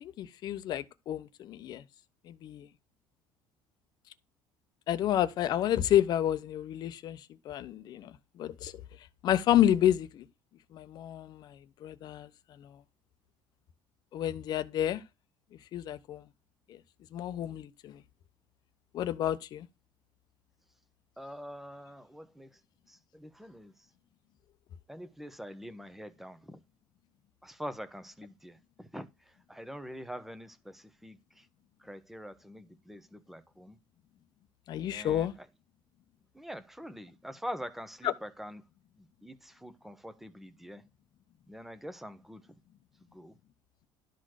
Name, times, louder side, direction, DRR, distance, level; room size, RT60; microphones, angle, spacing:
voice 1, 0.0-1.8 2.3-2.7 4.9-8.7 9.2-10.3 10.7-12.3 12.6-12.8 14.1-15.0 15.7-16.2 16.7-16.8 17.1-18.0 18.9-19.7 34.7-35.3 38.0-38.1, left 11 dB, 50° left, 1.0 m, -30 dB
voice 2, 21.2-22.6 22.9-23.9 24.9-26.6 27.4-31.5 31.8-33.8 34.9-35.3 36.3-38.6 39.0-40.8 41.5-42.5 43.0-43.4, equal, 5° right, 1.1 m, -45 dB
12.5 x 4.2 x 6.5 m
cardioid pair, 150°, 9 cm